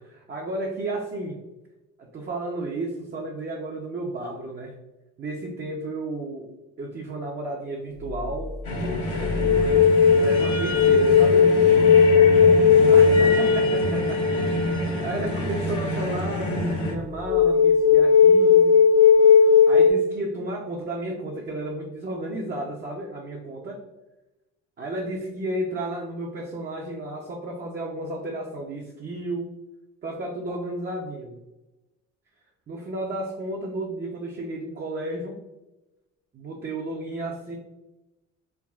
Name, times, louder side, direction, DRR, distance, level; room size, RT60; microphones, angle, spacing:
voice 1, 0.0-1.4 2.0-4.8 5.2-6.5 6.8-9.8 10.1-11.5 12.9-14.2 14.5-18.7 19.7-23.8 24.8-29.5 30.0-31.4 32.7-35.4 36.3-37.6, right 1 dB, 35° right, -1 dB, 0.5 m, -33 dB
sound 1, 8.1-8.4 8.9-14.8 17.3-19.9, left 6 dB, 45° left, 0.4 m, -17 dB
sound 2, 8.6-16.9, left 1 dB, 65° left, 1.2 m, -28 dB
3.4 x 2.3 x 2.3 m, 1.0 s
cardioid pair, 80°, 32 cm